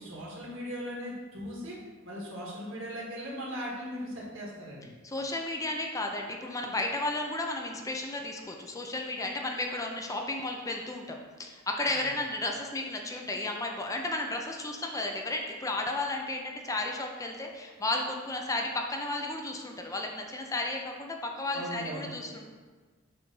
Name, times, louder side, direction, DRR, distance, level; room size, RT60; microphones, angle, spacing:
voice 1, 0.0-1.8 2.0-4.9 12.0-12.1 21.5-22.1, equal, 75° right, -4 dB, 1.8 m, -38 dB
voice 2, 5.0-22.4, left 2 dB, 15° left, 2 dB, 0.5 m, -33 dB
6.7 x 2.6 x 5.3 m, 1.4 s
head